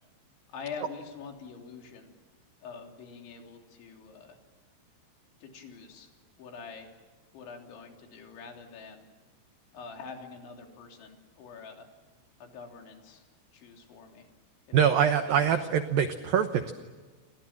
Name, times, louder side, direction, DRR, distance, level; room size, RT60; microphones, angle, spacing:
voice 1, 0.5-2.1 2.6-4.4 5.4-6.9 7.3-9.1 9.7-11.9 12.4-13.3 13.5-14.3 14.7-15.6, left 5 dB, 65° left, 2 dB, 5.5 m, -45 dB
voice 2, 14.7-16.7, right 8 dB, 85° right, 8 dB, 2.0 m, -24 dB
29.0 x 27.0 x 7.4 m, 1.4 s
omnidirectional pair, 5.8 m